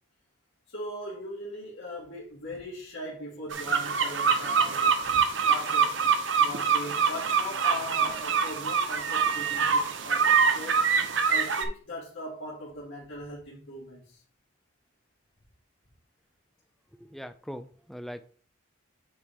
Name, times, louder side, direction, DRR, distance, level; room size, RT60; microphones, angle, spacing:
voice 1, 0.7-5.9 6.4-10.9 11.3-14.2, left 1 dB, 70° left, 1.9 m, -40 dB
sound 1, 3.5-11.7, right 6 dB, 65° right, 0.8 m, -25 dB
voice 2, 17.0-18.3, equal, ahead, 0.4 m, -41 dB
8.3 x 4.3 x 3.5 m
head